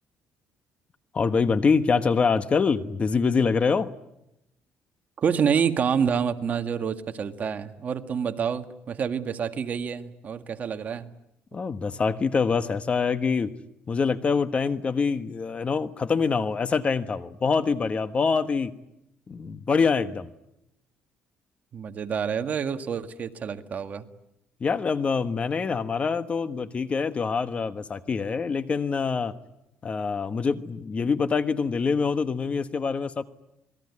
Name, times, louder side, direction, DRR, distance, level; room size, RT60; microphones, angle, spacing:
voice 1, 1.1-3.9 11.5-13.5 13.9-18.7 19.3-20.3 24.6-29.3 29.8-33.2, left 5 dB, 35° left, 11 dB, 1.3 m, -25 dB
voice 2, 5.2-11.1 21.7-24.0, right 7 dB, 45° right, 7 dB, 1.9 m, -27 dB
27.5 x 21.0 x 9.7 m, 0.85 s
cardioid pair, 115°, 4 cm